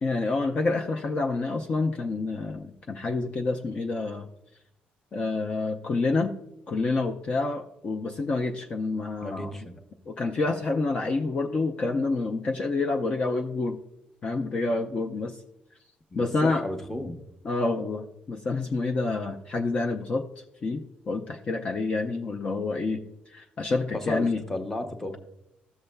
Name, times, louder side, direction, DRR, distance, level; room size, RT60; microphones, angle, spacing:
voice 1, 0.0-4.3 5.1-6.3 6.7-9.6 10.1-13.8 14.2-15.4 16.1-16.6 17.4-20.2 20.6-24.4, left 3 dB, 35° left, 2 dB, 0.5 m, -28 dB
voice 2, 9.2-9.8 16.1-17.2 23.9-25.1, left 1 dB, 10° left, 5 dB, 0.8 m, -33 dB
14.0 x 6.7 x 2.2 m, 0.83 s
cardioid pair, 145°, 3 cm